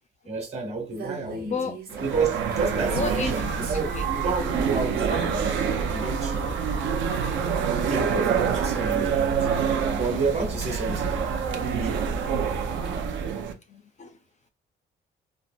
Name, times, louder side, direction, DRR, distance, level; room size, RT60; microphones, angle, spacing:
voice 1, 0.3-1.5 2.0-5.6 5.9-6.6 7.9-9.5 9.9-11.2 11.5-12.0, right 4 dB, 30° right, 1.2 m, -30 dB
Female speech woman speaking, 0.9-5.1, right 6 dB, 50° right, 1.0 m, -42 dB
voice 2, 1.1-2.1 2.9-4.1 10.9-11.1 12.0-12.5 12.9-13.2 13.7-14.2, left 4 dB, 35° left, 0.4 m, -35 dB
sound 1, 1.9-13.5, right 6 dB, 75° right, 0.6 m, -26 dB
3.4 x 2.0 x 2.5 m
cardioid pair, 90°, 20 cm